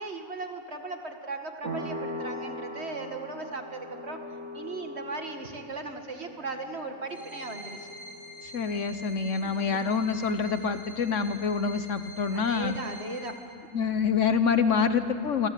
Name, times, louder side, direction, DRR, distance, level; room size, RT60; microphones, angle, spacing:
voice 1, 0.0-4.2 4.5-7.9 9.4-9.7 12.3-13.4, right 3 dB, 45° right, 5 dB, 2.2 m, -37 dB
sound 1, 1.6-10.0, equal, 70° right, 2.7 m, -41 dB
sound 2, 7.1-13.3, left 1 dB, ahead, 5.0 m, -46 dB
voice 2, 8.5-12.8 13.7-15.5, left 5 dB, 60° left, 10 dB, 1.4 m, -26 dB
27.5 x 25.0 x 8.4 m, 2.5 s
omnidirectional pair, 1.5 m